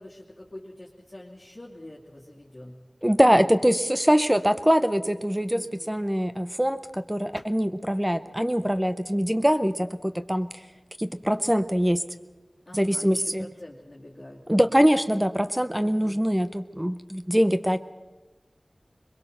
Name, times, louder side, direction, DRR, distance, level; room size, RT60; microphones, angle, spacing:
voice 1, 0.0-2.8 5.5-5.9 12.7-14.9 15.8-16.2, left 1 dB, 35° left, -5 dB, 2.5 m, -46 dB
voice 2, 3.0-10.5 11.0-12.0 12.7-13.5 14.5-17.8, equal, 10° right, 11 dB, 0.8 m, -23 dB
22.0 x 22.0 x 6.6 m, 1.2 s
wide cardioid pair, 60°, 0 cm